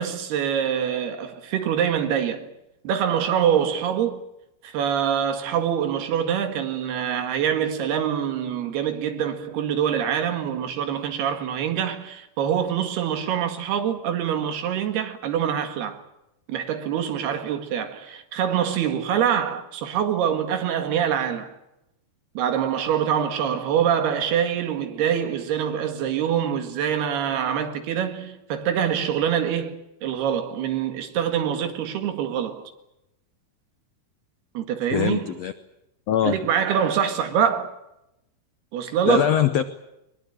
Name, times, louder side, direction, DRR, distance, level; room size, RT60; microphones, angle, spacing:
voice 1, 0.0-2.5 2.8-4.2 4.6-16.0 16.5-21.6 22.4-32.7 34.6-35.3 36.2-37.7 38.7-39.4, right 9 dB, 85° right, 3.9 m, -25 dB
voice 2, 34.9-35.5 36.1-36.5 39.1-39.6, left 10 dB, 85° left, 1.4 m, -22 dB
22.5 x 22.0 x 8.7 m
omnidirectional pair, 4.5 m